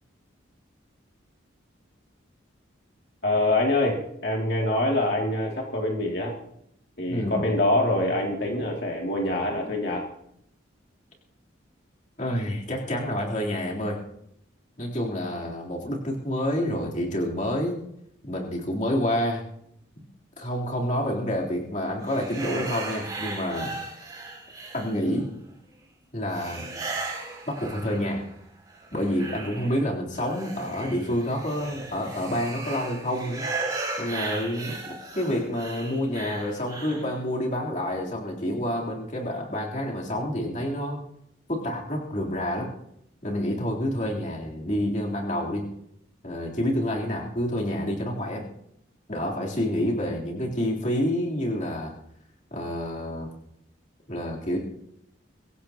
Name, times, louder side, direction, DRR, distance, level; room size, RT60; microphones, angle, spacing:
voice 1, 3.2-6.3 7.0-10.0, left 1 dB, 55° left, -1 dB, 2.6 m, -25 dB
voice 2, 7.1-7.5 12.2-14.0 14.8-17.8 18.2-19.4 20.0-20.1 20.4-23.7 24.7-25.3 26.1-26.9 27.5-28.2 28.9-33.4 34.0-41.0 41.5-42.7 43.2-45.7 46.2-48.4 49.1-51.9 52.5-53.3 54.1-54.6, equal, 40° left, -3 dB, 3.6 m, -28 dB
sound 1, 22.1-25.2 26.3-28.3 28.7-37.1, right 3 dB, 20° right, 4.4 m, -36 dB
23.5 x 17.0 x 3.0 m, 0.74 s
head